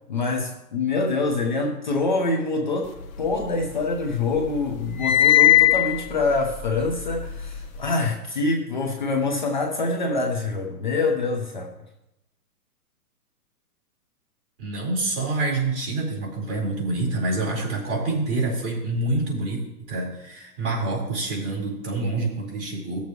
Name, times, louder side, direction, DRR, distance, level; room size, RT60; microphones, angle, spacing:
voice 1, 0.1-11.7, left 3 dB, 30° left, 2 dB, 0.7 m, -25 dB
sound 1, 3.0-4.1 4.4-7.8, left 13 dB, 60° left, 1.1 m, -21 dB
voice 2, 14.6-19.6 19.9-23.0, right 2 dB, 45° right, -4 dB, 4.0 m, -27 dB
16.5 x 6.9 x 3.1 m, 0.90 s
hypercardioid pair, 170°, 47 cm